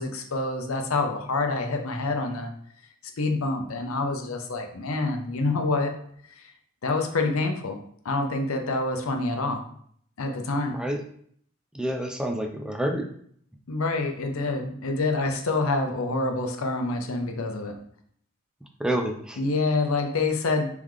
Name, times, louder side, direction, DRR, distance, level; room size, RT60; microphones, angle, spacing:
voice 1, 0.0-2.5 3.2-5.9 6.3-6.4 6.8-7.8 8.0-9.6 10.2-10.8 13.7-17.8 19.4-20.7, left 3 dB, 85° left, 4 dB, 0.7 m, -27 dB
voice 2, 11.7-13.1 18.8-19.4, right 1 dB, 5° right, 4 dB, 0.4 m, -28 dB
3.7 x 3.5 x 3.2 m, 0.63 s
head